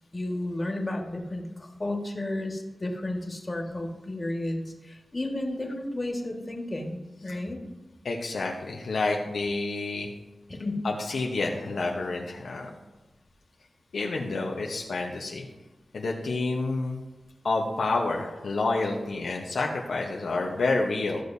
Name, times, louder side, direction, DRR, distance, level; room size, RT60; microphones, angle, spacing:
voice 1, 0.1-7.6 10.5-10.8, left 1 dB, 35° left, 2 dB, 1.7 m, -32 dB
voice 2, 8.0-10.1 10.8-12.7 13.9-15.5 15.9-17.0 17.4-21.2, left 3 dB, 85° left, 0 dB, 0.9 m, -29 dB
14.0 x 6.4 x 2.7 m, 1.1 s
cardioid pair, 45°, 0 cm